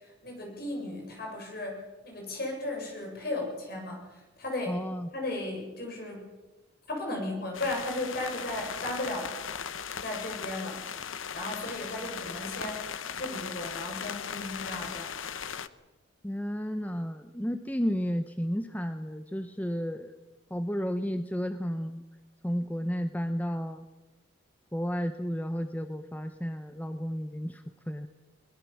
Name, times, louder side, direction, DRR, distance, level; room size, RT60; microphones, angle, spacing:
voice 1, 0.2-4.8 5.1-6.3 6.9-9.3 10.0-10.8 11.3-12.9 13.2-15.2, left 1 dB, 50° left, 2 dB, 7.5 m, -35 dB
voice 2, 4.7-5.1 16.2-20.1 20.5-22.0 22.4-23.9 24.7-28.1, equal, 10° left, 8 dB, 0.8 m, -32 dB
sound 1, 7.5-15.7, left 7 dB, 80° left, 1.0 m, -38 dB
22.5 x 20.5 x 7.2 m, 1.1 s
head